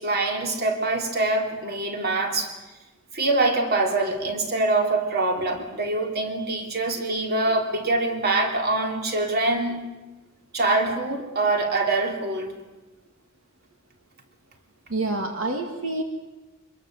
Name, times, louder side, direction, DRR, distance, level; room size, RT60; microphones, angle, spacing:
voice 1, 0.0-2.5 3.1-9.8 10.5-12.5, right 2 dB, 50° right, 3 dB, 3.4 m, -24 dB
voice 2, 14.9-16.0, right 2 dB, 80° right, 4 dB, 2.2 m, -27 dB
25.0 x 21.5 x 7.8 m, 1.1 s
head